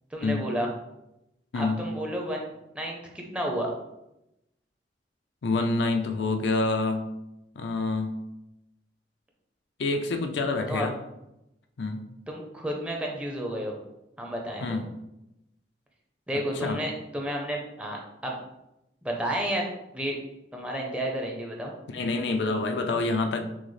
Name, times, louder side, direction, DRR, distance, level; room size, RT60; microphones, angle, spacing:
voice 1, 0.1-0.7 1.5-2.4 2.7-3.7 10.7-10.9 12.3-13.8 14.2-14.8 16.3-18.3 19.0-19.7 19.9-20.2 20.5-21.7, equal, 5° right, 0 dB, 0.6 m, -31 dB
voice 2, 1.5-1.9 5.4-7.1 7.6-8.2 9.8-10.9 11.8-12.1 14.6-14.9 16.6-16.8 21.9-23.4, left 3 dB, 70° left, 6 dB, 0.4 m, -27 dB
6.1 x 2.1 x 3.2 m, 0.89 s
head